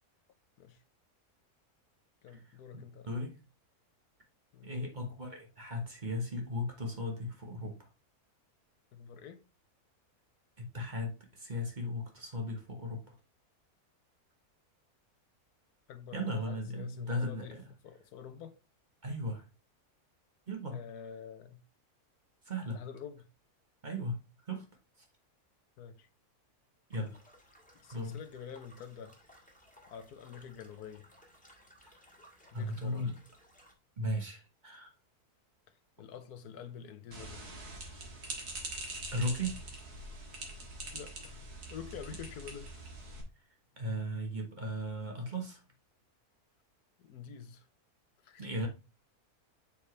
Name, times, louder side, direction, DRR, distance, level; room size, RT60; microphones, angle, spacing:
voice 1, 2.2-3.1 4.5-4.7 8.9-9.4 15.9-17.6 17.8-18.6 20.7-21.6 22.7-23.3 25.8-26.1 27.8-29.2 29.9-31.1 32.5-33.1 36.0-37.6 40.9-41.4 41.7-42.8 47.0-47.7 48.2-48.5, left 8 dB, 85° left, 1.3 m, -47 dB
voice 2, 2.7-3.4 4.6-7.9 10.6-13.2 16.1-17.7 19.0-19.4 20.5-20.8 22.4-22.8 23.8-24.2 24.5-24.6 26.9-27.2 27.9-28.2 31.8-31.9 32.5-33.1 34.0-34.9 39.1-39.7 43.8-45.6 48.4-48.7, left 1 dB, 35° right, 1.2 m, -36 dB
sound 1, 26.9-33.7, equal, 5° left, 1.6 m, -61 dB
sound 2, 37.1-43.2, right 2 dB, 85° right, 2.0 m, -44 dB
7.1 x 4.6 x 3.2 m
omnidirectional pair, 1.6 m